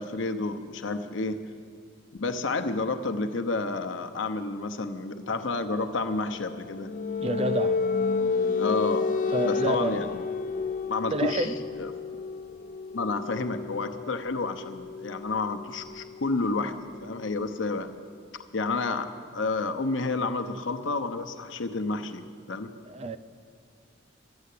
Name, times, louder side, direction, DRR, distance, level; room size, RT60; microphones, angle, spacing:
voice 1, 0.0-1.4 2.2-6.9 8.6-9.1 9.4-10.3 10.9-11.5 11.8-11.9 12.9-17.9 18.5-22.7, left 3 dB, 80° left, 0.8 m, -30 dB
sound 1, 6.0-17.6, left 4 dB, 45° left, 0.3 m, -31 dB
voice 2, 7.2-7.8 9.3-10.2 11.1-11.6 22.9-23.2, right 2 dB, 35° right, 0.5 m, -29 dB
11.5 x 10.5 x 8.4 m
head